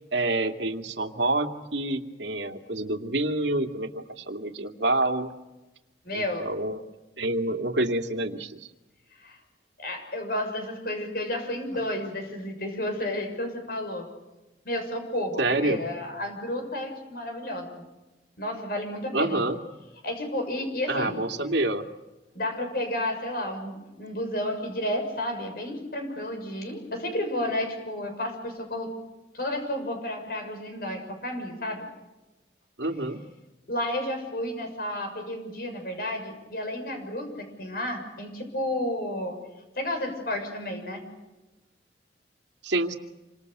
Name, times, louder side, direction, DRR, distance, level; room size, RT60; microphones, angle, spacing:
voice 1, 0.1-5.3 6.1-6.8 7.2-8.6 15.4-15.8 19.1-19.6 20.9-21.9 32.8-33.2 42.6-43.0, right 2 dB, 80° right, 5 dB, 2.5 m, -27 dB
voice 2, 6.0-6.5 9.2-9.4 9.8-14.1 14.6-17.8 18.4-19.4 20.0-21.2 22.3-28.9 29.3-31.9 33.7-39.3 39.8-41.0, left 1 dB, 55° left, 5 dB, 6.7 m, -31 dB
28.5 x 26.0 x 6.8 m, 1.1 s
head